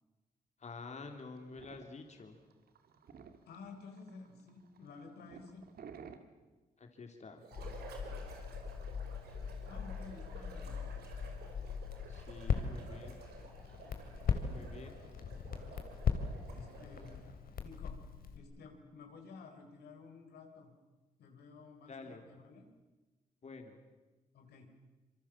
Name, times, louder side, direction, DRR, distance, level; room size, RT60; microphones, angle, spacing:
voice 1, 0.6-2.4 6.8-7.4 12.1-13.2 14.5-14.9 21.9-22.2 23.4-23.8, left 4 dB, 45° left, 5 dB, 3.1 m, -49 dB
sound 1, 1.1-6.2, right 6 dB, 70° right, 2.3 m, -54 dB
voice 2, 3.5-5.6 9.7-10.9 12.6-12.9 14.2-15.4 16.5-17.1 17.6-18.0 18.3-20.7 21.2-22.7 24.3-24.7, left 4 dB, 90° left, 4 dB, 4.2 m, -53 dB
sound 2, 7.4-17.3, right 4 dB, 90° right, 5.1 m, -53 dB
Crackle, 7.5-18.4, left 6 dB, 65° left, 2.9 m, -39 dB
26.5 x 23.5 x 7.4 m, 1.2 s
cardioid pair, 75°, 16 cm